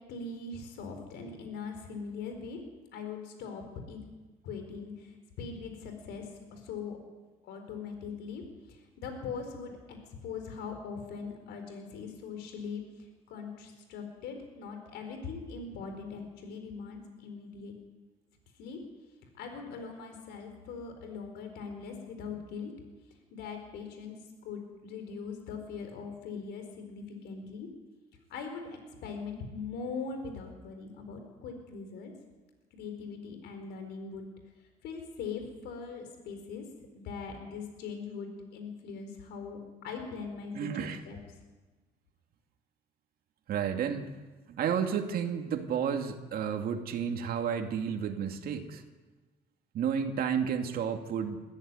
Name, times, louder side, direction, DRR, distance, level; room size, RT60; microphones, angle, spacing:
voice 1, 0.1-2.6 2.9-4.0 4.4-5.1 5.4-6.2 6.5-7.0 7.4-8.4 8.7-10.0 10.2-12.8 13.3-17.7 18.6-18.8 19.4-22.7 23.3-24.2 24.4-27.7 28.3-32.1 32.7-34.3 34.8-36.6 36.9-39.6 39.8-41.2, left 5 dB, 80° left, 5 dB, 4.5 m, -41 dB
voice 2, 40.5-41.0 43.5-44.1 44.5-48.8 49.7-51.4, right 7 dB, 60° right, 5 dB, 2.3 m, -31 dB
22.0 x 15.0 x 9.7 m, 1.3 s
cardioid pair, 110°, 17 cm